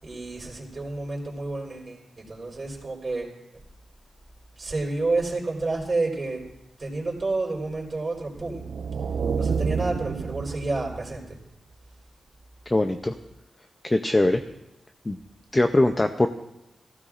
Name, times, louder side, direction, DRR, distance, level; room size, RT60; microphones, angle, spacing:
voice 1, 0.0-3.4 4.6-6.4 6.8-8.6 9.4-11.4, right 3 dB, 25° right, -4 dB, 4.2 m, -30 dB
sound 1, 8.4-11.3, right 5 dB, 80° right, 0.7 m, -29 dB
voice 2, 12.7-13.1 13.8-14.4 15.1-15.2 15.5-16.3, left 2 dB, 15° left, 7 dB, 0.5 m, -21 dB
23.0 x 15.5 x 2.5 m, 0.87 s
wide cardioid pair, 160°, 0 cm